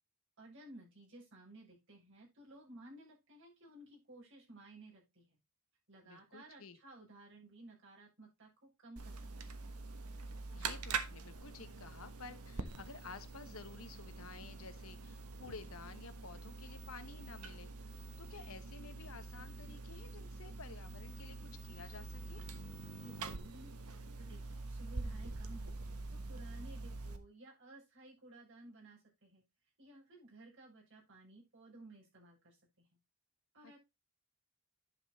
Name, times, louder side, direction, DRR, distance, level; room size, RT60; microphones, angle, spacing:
voice 1, 0.4-5.4 5.9-9.6 23.0-23.7 24.2-25.8 26.1-29.4 29.8-32.9 33.5-33.8, right 2 dB, 55° right, -4 dB, 6.9 m, -56 dB
voice 2, 6.0-6.8 10.5-21.4 21.6-22.4 33.6-33.8, left 4 dB, 70° left, 11 dB, 1.1 m, -52 dB
sound 1, 9.0-27.2, right 3 dB, 85° right, 1.2 m, -45 dB
11.0 x 5.9 x 4.1 m, 0.23 s
head